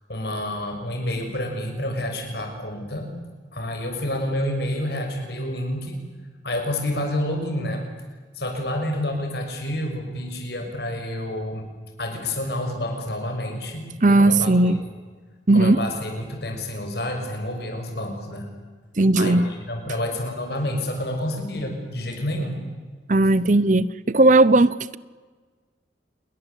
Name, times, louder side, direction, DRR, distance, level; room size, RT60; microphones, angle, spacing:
voice 1, 0.1-3.1 3.5-6.0 6.4-7.9 8.3-11.6 12.0-14.8 15.5-18.5 19.1-22.5, left 1 dB, 60° left, 4 dB, 6.4 m, -29 dB
voice 2, 14.0-14.8 15.5-15.8 19.0-19.5 23.1-25.0, right 2 dB, 40° right, 18 dB, 0.8 m, -17 dB
29.0 x 22.5 x 8.4 m, 1.4 s
head